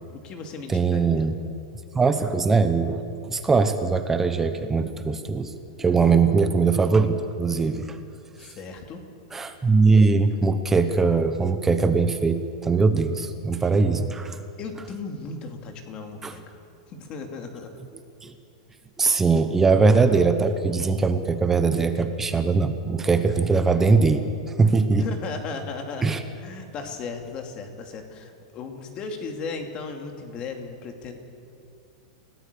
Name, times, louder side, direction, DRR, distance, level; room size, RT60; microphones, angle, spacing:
voice 1, 0.1-1.3 6.0-6.4 8.4-9.1 13.5-13.6 14.6-16.4 16.9-17.7 25.0-31.1, left 4 dB, 25° left, 4 dB, 2.7 m, -36 dB
voice 2, 0.7-1.3 1.9-5.5 5.8-8.0 9.3-14.4 16.2-16.3 18.2-18.3 19.0-25.0 26.0-26.2, right 4 dB, 10° right, 8 dB, 1.0 m, -21 dB
29.5 x 17.5 x 6.9 m, 2.5 s
supercardioid pair, 160°, 3 cm